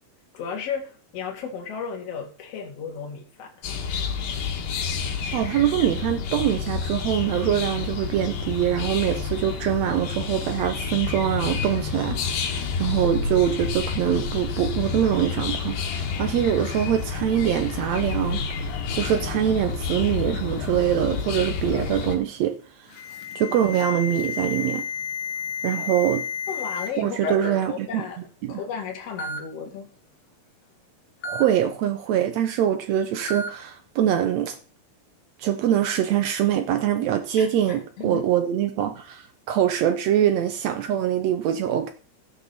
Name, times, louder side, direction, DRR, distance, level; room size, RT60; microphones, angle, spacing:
voice 1, 0.3-3.5 26.5-28.2 28.5-29.9 37.4-38.2, left 6 dB, 50° left, 2.7 m, -34 dB
sound 1, 3.6-22.2, left 5 dB, 85° left, 3.2 m, -29 dB
voice 2, 5.1-22.9 23.3-24.9 25.6-26.3 27.0-28.0 28.4-28.6 31.2-34.6 35.4-41.9, right 10 dB, 80° right, 1.5 m, -24 dB
Alarm, 22.9-26.9 27.2-27.6 28.5-28.6 29.2-29.4 31.2-31.4 33.3-33.5, left 5 dB, 65° left, 1.4 m, -31 dB
16.0 x 6.4 x 4.1 m
omnidirectional pair, 4.1 m